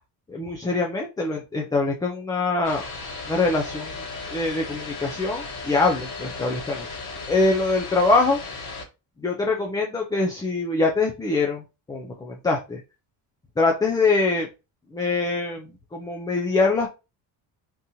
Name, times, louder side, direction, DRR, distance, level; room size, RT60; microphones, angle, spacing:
voice 1, 0.3-2.8 3.3-6.9 7.3-8.4 9.2-12.8 13.6-14.5 14.9-16.9, left 3 dB, 10° left, 0 dB, 0.3 m, -24 dB
sound 1, 2.6-8.8, left 3 dB, 60° left, 1.6 m, -36 dB
3.7 x 2.8 x 2.6 m, 0.28 s
cardioid pair, 140°, 43 cm